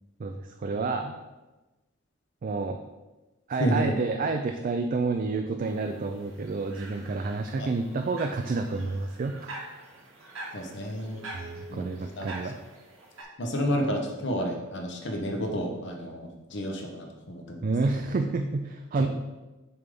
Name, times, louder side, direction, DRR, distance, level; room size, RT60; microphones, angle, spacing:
voice 1, 0.2-1.2 2.4-2.8 3.5-9.4 11.3-12.6 17.6-19.1, right 3 dB, 45° right, 5 dB, 0.4 m, -29 dB
voice 2, 3.5-3.9 7.6-7.7 10.5-11.2 11.7-11.8 12.2-12.3 13.4-17.7 19.0-19.1, equal, 60° left, 2 dB, 0.9 m, -30 dB
sound 1, 5.6-13.2, right 2 dB, 85° right, 1.8 m, -45 dB
6.8 x 3.4 x 5.2 m, 1.1 s
head